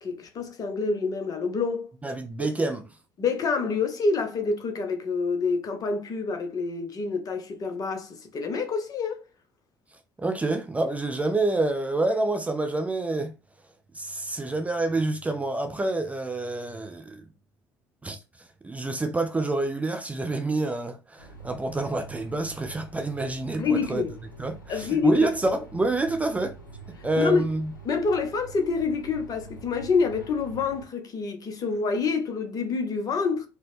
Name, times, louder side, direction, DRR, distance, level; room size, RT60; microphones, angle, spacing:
voice 1, 0.0-1.9 2.4-2.5 3.2-9.2 23.6-24.1 24.7-25.3 27.1-27.4 27.8-33.5, left 4 dB, 35° left, 0.8 m, -27 dB
voice 2, 2.0-2.8 10.2-13.3 13.9-17.2 18.0-18.2 18.6-24.0 24.4-26.5 27.0-27.7, right 2 dB, 15° right, 0.4 m, -27 dB
sound 1, 21.2-30.9, right 4 dB, 80° left, 0.7 m, -45 dB
3.9 x 2.1 x 3.1 m
figure-of-eight pair, 60°, 11 cm